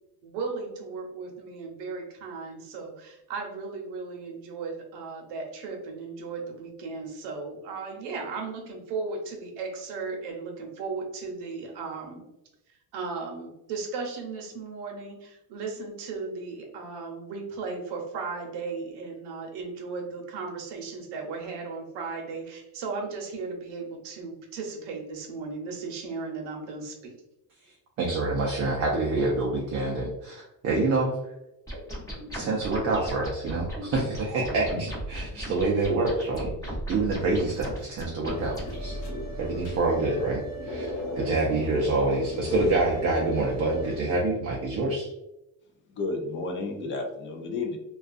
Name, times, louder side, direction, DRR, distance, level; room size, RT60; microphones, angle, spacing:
voice 1, 0.2-12.3 12.9-27.1, right 4 dB, 65° right, 2 dB, 0.8 m, -36 dB
voice 2, 28.0-31.2 32.3-39.0 39.4-40.9 41.2-45.1, right 2 dB, 35° right, -3 dB, 0.4 m, -27 dB
sound 1, 31.7-38.7, equal, 10° left, 0.7 m, -37 dB
sound 2, 38.2-44.0, equal, 45° left, 0.7 m, -35 dB
voice 3, 45.9-47.8, left 3 dB, 30° left, 3 dB, 0.3 m, -32 dB
2.4 x 2.3 x 2.4 m, 0.90 s
cardioid pair, 145°, 45 cm